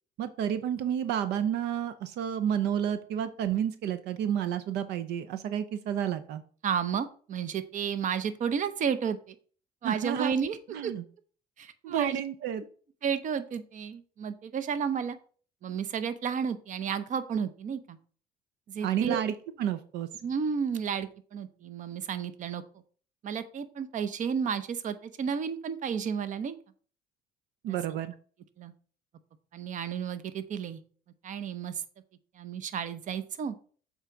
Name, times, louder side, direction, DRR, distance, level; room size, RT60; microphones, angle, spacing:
voice 1, 0.2-6.4 9.8-10.3 10.7-11.0 11.8-12.6 18.8-20.1 27.6-28.1, right 9 dB, 80° right, 11 dB, 0.6 m, -30 dB
voice 2, 6.6-9.3 9.8-10.6 10.8-10.9 11.6-12.2 13.0-15.2 15.6-18.0 18.7-19.2 20.2-22.6 23.2-26.6 27.7-27.8 28.6-28.7 29.5-30.8 31.2-31.7 32.4-33.5, right 7 dB, 50° right, 13 dB, 0.7 m, -32 dB
7.3 x 4.0 x 4.6 m, 0.43 s
cardioid pair, 110°, 17 cm